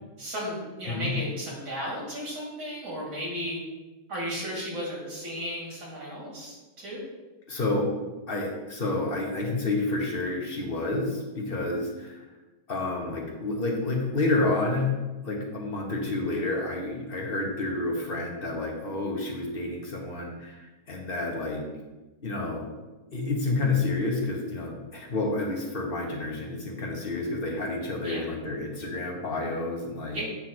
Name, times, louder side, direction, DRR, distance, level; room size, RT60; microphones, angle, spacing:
voice 1, 0.2-3.6 4.1-7.0 28.0-28.2 30.1-30.2, equal, 70° right, -4 dB, 3.0 m, -34 dB
voice 2, 7.5-7.9 8.3-12.2 12.7-14.9 15.2-21.6 22.2-22.7 23.1-30.2, left 2 dB, 35° left, -1 dB, 1.3 m, -29 dB
8.7 x 3.3 x 6.0 m, 1.2 s
omnidirectional pair, 1.8 m